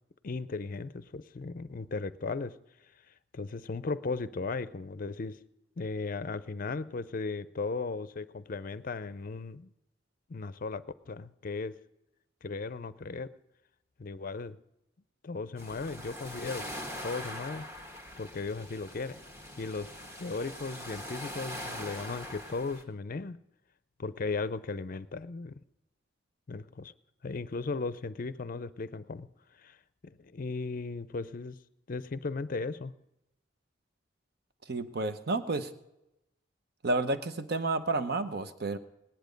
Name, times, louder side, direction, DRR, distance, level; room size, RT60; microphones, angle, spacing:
voice 1, 0.2-2.6 3.3-5.4 5.8-9.7 10.3-11.8 12.4-13.3 14.0-14.6 15.2-16.7 17.0-17.7 18.2-19.2 19.6-19.9 20.2-23.4 24.0-25.6 26.5-26.9 27.2-29.3 29.6-29.7 30.0-31.6 31.9-32.9, left 3 dB, 45° left, 16 dB, 0.5 m, -36 dB
sound 1, 15.6-22.8, left 1 dB, 15° right, 1.4 m, -42 dB
voice 2, 34.7-35.7 36.8-38.8, right 3 dB, 55° right, 10 dB, 0.8 m, -30 dB
18.0 x 10.5 x 5.2 m, 0.89 s
head